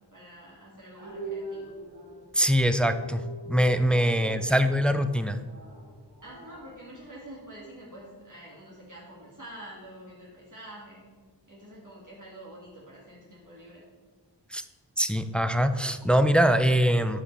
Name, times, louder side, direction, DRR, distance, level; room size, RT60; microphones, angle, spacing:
voice 1, 0.1-1.8 4.1-4.6 6.2-11.1 11.5-13.8, right 1 dB, 45° right, -6 dB, 2.1 m, -47 dB
sound 1, 1.0-7.3, right 1 dB, 85° right, 2.2 m, -42 dB
voice 2, 2.3-5.4 14.5-14.6 15.0-17.2, equal, 5° left, 9 dB, 0.3 m, -23 dB
11.0 x 4.9 x 3.4 m, 1.4 s
wide cardioid pair, 50°, 44 cm